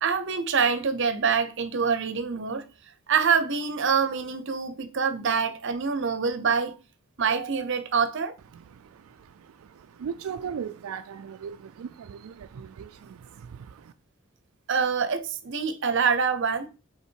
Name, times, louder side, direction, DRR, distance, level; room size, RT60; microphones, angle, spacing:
voice 1, 0.0-2.7 3.1-6.8 7.2-8.4 14.7-16.7, right 6 dB, 60° right, 0.7 m, -25 dB
voice 2, 8.5-13.9, right 7 dB, 90° right, 0.4 m, -39 dB
5.6 x 4.0 x 4.5 m
head